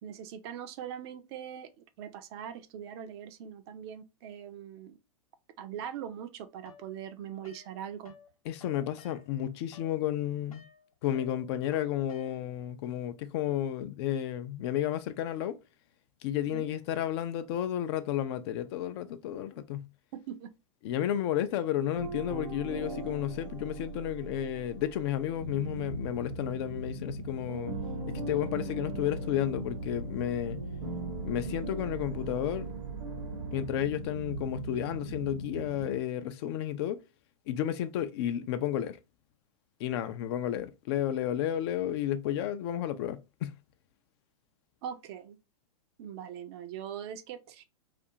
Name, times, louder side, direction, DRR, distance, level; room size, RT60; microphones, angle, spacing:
voice 1, 0.0-5.0 5.6-8.1 16.5-16.7 20.1-20.5 44.8-45.4 46.0-47.6, right 9 dB, 45° right, 0.4 m, -41 dB
sound 1, 6.6-8.3 8.6-12.7, left 5 dB, 85° left, 0.7 m, -56 dB
voice 2, 8.5-10.6 11.0-15.6 16.2-19.9 20.8-27.8 28.1-30.6 31.2-32.7 33.5-37.0 37.5-39.0 39.8-43.5, left 11 dB, 50° left, 0.4 m, -32 dB
sound 2, 21.9-27.2 27.5-33.8, right 3 dB, 65° right, 0.9 m, -41 dB
sound 3, 25.4-36.0, right 2 dB, 90° right, 0.9 m, -40 dB
2.5 x 2.4 x 2.7 m
hypercardioid pair, 100°, 18 cm